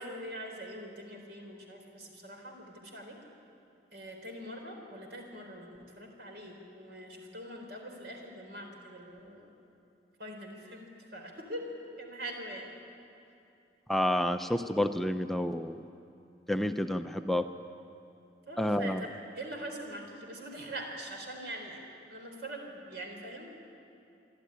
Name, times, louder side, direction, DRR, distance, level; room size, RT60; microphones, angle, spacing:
voice 1, 0.0-3.1 3.9-9.6 10.2-11.6 12.0-12.7 18.5-21.8 22.1-23.5, right 1 dB, 65° right, 2 dB, 4.1 m, -43 dB
voice 2, 13.9-15.8 16.5-17.5 18.6-19.0, left 1 dB, ahead, 7 dB, 0.5 m, -29 dB
26.5 x 12.5 x 10.0 m, 2.7 s
head